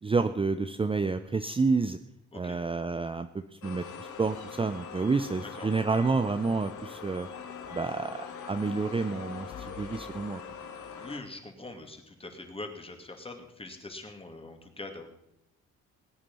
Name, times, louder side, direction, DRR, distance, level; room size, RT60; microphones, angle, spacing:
voice 1, 0.0-2.0 2.3-7.3 7.7-10.4, right 4 dB, 20° right, 10 dB, 0.6 m, -29 dB
sound 1, 3.6-11.2, left 6 dB, 75° left, 2.0 m, -42 dB
voice 2, 11.0-15.1, left 2 dB, 20° left, 5 dB, 2.5 m, -43 dB
19.5 x 8.8 x 5.5 m, 0.84 s
cardioid pair, 90°, 30 cm